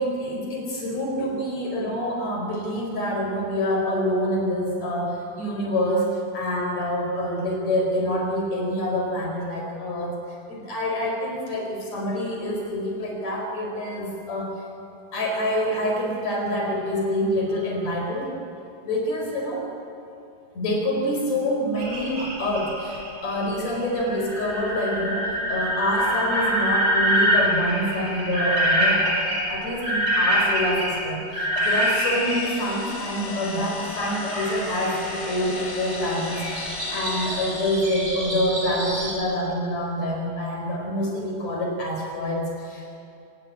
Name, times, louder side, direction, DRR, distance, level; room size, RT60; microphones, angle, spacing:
voice 1, 0.0-10.2 10.5-14.5 15.1-18.3 18.8-19.6 20.6-29.2 29.5-43.0, equal, 50° left, 1 dB, 5.8 m, -26 dB
sound 1, 21.8-32.4 33.9-39.1, equal, 55° right, 9.5 m, -26 dB
sound 2, 31.5-38.2, left 3 dB, 80° left, 4.3 m, -36 dB
25.0 x 19.5 x 8.8 m, 2.6 s
omnidirectional pair, 4.1 m